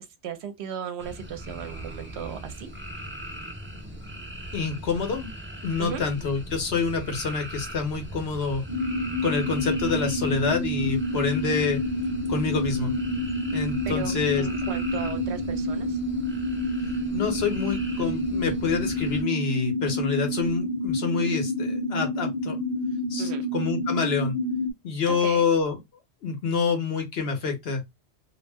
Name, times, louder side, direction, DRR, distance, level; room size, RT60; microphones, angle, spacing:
voice 1, 0.2-2.7 5.8-6.0 13.9-16.0 23.2-23.4 25.1-25.5, right 8 dB, 75° right, 0.9 m, -36 dB
sound 1, 1.0-19.2, right 1 dB, 15° right, 0.5 m, -39 dB
voice 2, 4.5-5.3 5.6-8.6 9.2-11.8 12.3-12.9 13.5-14.5 17.1-22.6 23.1-24.4 24.8-25.8 26.2-27.8, left 5 dB, 70° left, 1.0 m, -27 dB
sound 2, 8.7-24.7, left 1 dB, 40° left, 0.9 m, -28 dB
2.5 x 2.0 x 3.3 m
omnidirectional pair, 1.1 m